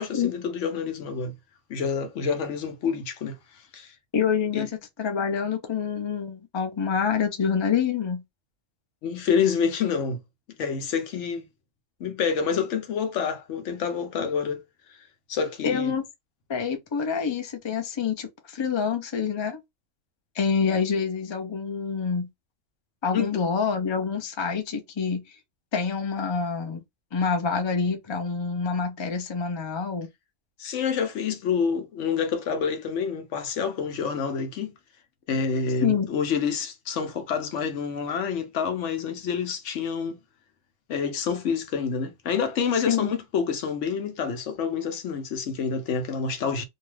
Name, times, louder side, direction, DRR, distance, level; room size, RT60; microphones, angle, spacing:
voice 1, 0.0-1.3 1.7-3.9 4.5-4.6 9.0-10.2 10.6-11.4 12.0-14.6 15.3-15.9 23.1-23.3 30.6-34.7 35.3-40.2 40.9-46.6, left 6 dB, 70° left, 1.0 m, -28 dB
voice 2, 4.1-4.7 5.0-8.2 15.6-16.0 16.5-19.6 20.3-22.3 23.0-25.2 25.7-26.8 27.1-30.1 35.8-36.1 42.9-43.1, left 6 dB, 45° left, 0.3 m, -26 dB
2.7 x 2.3 x 3.1 m
omnidirectional pair, 1.3 m